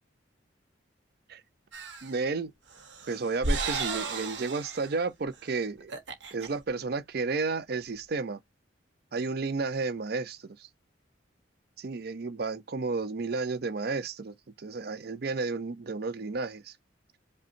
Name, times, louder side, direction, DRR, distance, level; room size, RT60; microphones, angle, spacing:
sound 1, 1.7-2.2 2.7-4.9 5.3-5.5 5.8-6.5, right 3 dB, 75° right, 0.9 m, -34 dB
voice 1, 2.0-2.5 3.1-5.9 6.3-8.4 9.1-10.7 11.8-16.7, right 4 dB, 55° right, 0.5 m, -32 dB
5.0 x 2.2 x 2.7 m
head